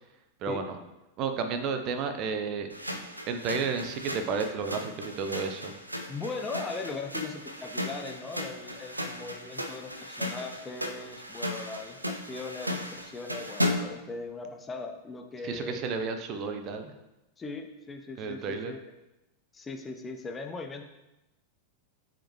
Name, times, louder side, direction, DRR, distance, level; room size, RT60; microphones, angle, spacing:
voice 1, 0.4-0.8 1.2-2.7 3.3-5.7 15.4-16.9 18.2-18.7, right 5 dB, 35° right, 7 dB, 0.7 m, -32 dB
sound 1, 2.7-14.0, left 1 dB, 85° right, 0.6 m, -36 dB
voice 2, 6.1-15.8 17.4-18.8 19.5-20.8, left 3 dB, 15° left, 4 dB, 0.7 m, -39 dB
8.6 x 5.1 x 3.1 m, 0.97 s
figure-of-eight pair, 90°, 0 cm